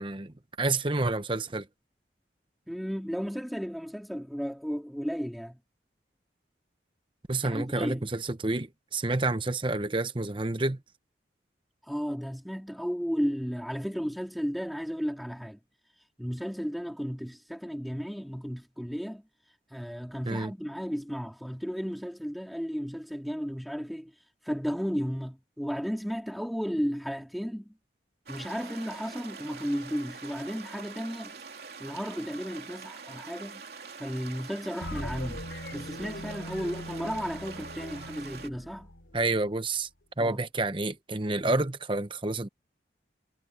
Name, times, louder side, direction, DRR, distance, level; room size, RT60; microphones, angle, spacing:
voice 1, 0.0-1.7 7.3-10.8 20.3-20.5 39.1-39.9 40.2-42.5, right 2 dB, 30° right, 1.0 m, -29 dB
voice 2, 2.7-5.6 7.4-8.0 11.8-15.6 16.2-19.2 19.7-24.1 24.4-27.7 28.3-31.4 31.8-33.6 34.0-38.9 40.2-40.5 41.4-41.7, equal, ahead, 4.1 m, -34 dB
sound 1, 28.3-38.5, right 5 dB, 60° right, 3.3 m, -45 dB
sound 2, 34.8-39.5, left 1 dB, 90° left, 4.5 m, -41 dB
head